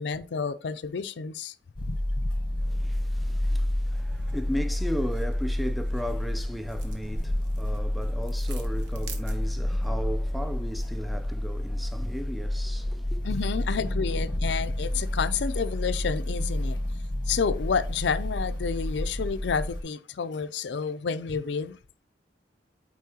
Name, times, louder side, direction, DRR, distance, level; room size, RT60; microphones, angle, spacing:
voice 1, 0.0-2.3 4.2-4.3 13.2-16.8 17.3-21.8, left 5 dB, 70° left, 0.5 m, -30 dB
sound 1, 1.8-19.8, left 1 dB, 25° left, 1.2 m, -29 dB
voice 2, 2.6-13.3, equal, ahead, 0.4 m, -36 dB
sound 2, 3.6-9.8, right 5 dB, 65° right, 1.1 m, -50 dB
8.3 x 4.3 x 2.8 m
head